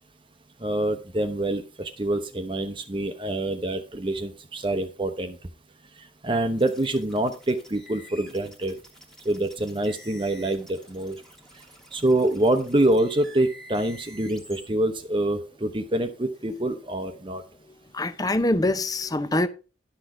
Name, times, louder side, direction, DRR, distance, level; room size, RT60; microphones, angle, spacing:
voice 1, 0.6-5.4 6.2-8.8 9.2-11.2 11.9-17.4, right 1 dB, 25° right, 0.8 m, -26 dB
sound 1, 6.6-14.7, equal, 5° left, 1.5 m, -49 dB
voice 2, 17.9-19.5, left 1 dB, 20° left, 0.6 m, -24 dB
11.5 x 6.3 x 4.8 m
head